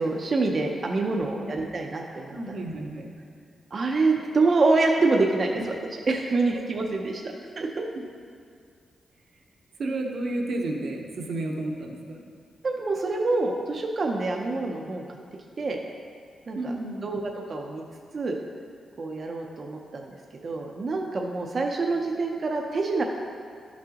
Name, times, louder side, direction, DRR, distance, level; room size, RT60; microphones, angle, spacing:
voice 1, 0.0-2.3 3.7-5.8 6.1-7.2 7.6-7.9 12.6-15.2 15.6-15.8 16.5-16.6 17.0-17.8 18.1-18.4 19.0-20.1 20.4-23.0, right 3 dB, 40° right, 1 dB, 0.5 m, -26 dB
voice 2, 1.0-1.5 2.3-3.1 9.8-12.2 16.5-17.0, right 2 dB, 60° right, 2 dB, 0.9 m, -32 dB
11.5 x 6.1 x 2.9 m, 2.2 s
wide cardioid pair, 155°, 0 cm